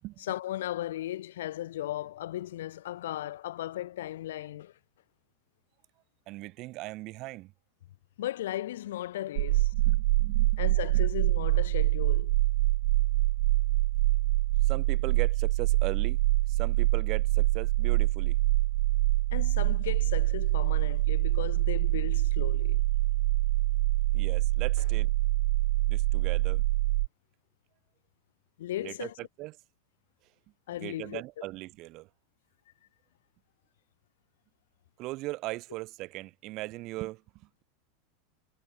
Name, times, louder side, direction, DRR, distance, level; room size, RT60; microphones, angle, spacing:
voice 1, 0.2-4.7 8.2-9.7 10.6-12.3 19.3-22.8 28.6-29.1 30.7-31.4, left 13 dB, 90° left, 1.2 m, -36 dB
voice 2, 6.3-7.5 9.7-11.1 14.6-16.2 16.5-18.4 24.1-25.1 25.9-26.6 28.8-29.6 30.8-32.1 35.0-37.6, right 20 dB, 45° right, 1.7 m, -39 dB
sound 1, 9.4-27.1, right 19 dB, 70° right, 0.4 m, -25 dB
supercardioid pair, 140°, 0 cm